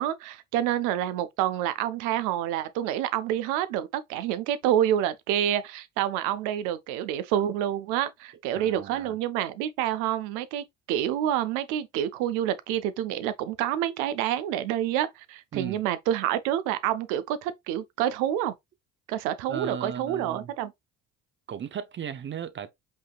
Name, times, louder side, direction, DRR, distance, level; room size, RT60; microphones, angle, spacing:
voice 1, 0.0-18.5 19.1-20.7, right 11 dB, 85° right, 0.6 m, -28 dB
voice 2, 8.6-9.2 15.5-15.8 19.5-20.5 21.5-22.7, right 8 dB, 40° right, 0.6 m, -36 dB
5.4 x 3.0 x 2.3 m
supercardioid pair, 75°, 31 cm